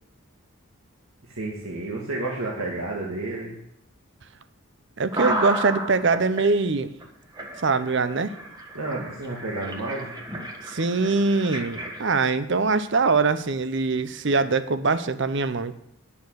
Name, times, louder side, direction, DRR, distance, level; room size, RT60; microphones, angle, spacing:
voice 1, 1.2-3.6 8.7-10.1, right 2 dB, 75° right, -3 dB, 1.9 m, -31 dB
voice 2, 5.0-6.9 7.6-8.3 10.7-15.7, right 4 dB, 55° right, 13 dB, 0.7 m, -23 dB
sound 1, 5.1-6.4 7.0-7.1 7.4-12.3, right 1 dB, 20° right, 1.3 m, -33 dB
10.5 x 7.0 x 6.4 m, 0.75 s
head